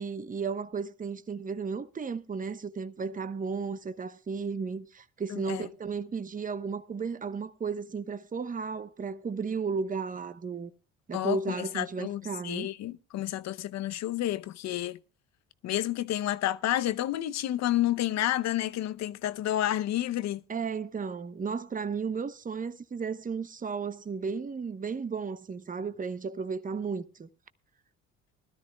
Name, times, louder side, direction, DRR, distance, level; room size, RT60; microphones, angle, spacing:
voice 1, 0.0-10.7 11.1-12.7 20.5-27.3, right 5 dB, 25° right, 0.9 m, -34 dB
voice 2, 5.3-5.7 11.1-15.0 15.6-20.4, left 13 dB, 60° left, 0.7 m, -30 dB
20.5 x 13.0 x 2.3 m
supercardioid pair, 65°, 30 cm